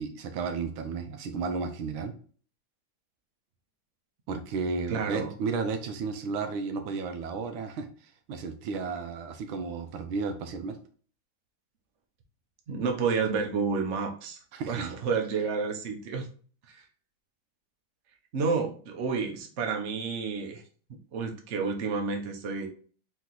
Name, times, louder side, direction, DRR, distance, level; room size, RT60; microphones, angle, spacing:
voice 1, 0.0-2.1 4.3-7.9 8.3-10.8 14.5-14.9, right 4 dB, 75° right, 7 dB, 1.4 m, -33 dB
voice 2, 4.9-5.3 12.7-16.3 16.7-16.8 18.3-20.6 20.9-22.7, right 5 dB, 55° right, 3 dB, 0.8 m, -30 dB
4.5 x 3.0 x 3.9 m, 0.42 s
omnidirectional pair, 2.3 m